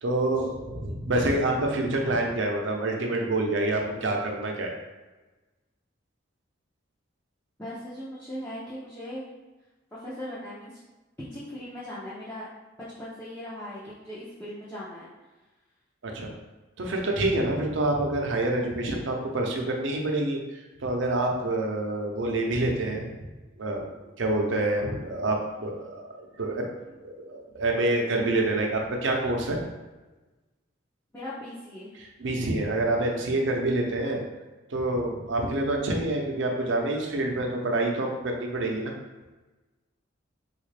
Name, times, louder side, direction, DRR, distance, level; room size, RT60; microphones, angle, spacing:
voice 1, 0.0-4.7 16.0-16.3 16.8-23.1 23.6-23.9 24.2-26.7 27.0-29.6 32.2-34.2 34.7-38.9, right 2 dB, 70° right, 1 dB, 0.6 m, -27 dB
voice 2, 7.6-9.2 9.9-10.8 11.2-12.5 13.0-15.1 31.1-31.9, left 1 dB, 10° left, -10 dB, 0.5 m, -39 dB
3.5 x 2.4 x 3.2 m, 1.2 s
head